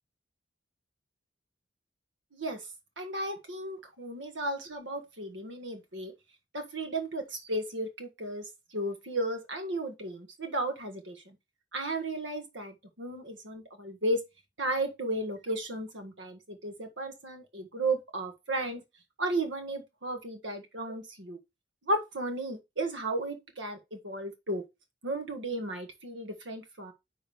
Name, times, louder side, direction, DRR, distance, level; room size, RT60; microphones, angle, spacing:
voice 1, 3.0-6.1 6.5-8.4 8.7-11.3 11.7-14.2 14.6-18.8 19.2-21.4 21.8-24.6 25.0-26.9, right 1 dB, 75° right, 1.7 m, -34 dB
10.0 x 3.7 x 3.4 m
head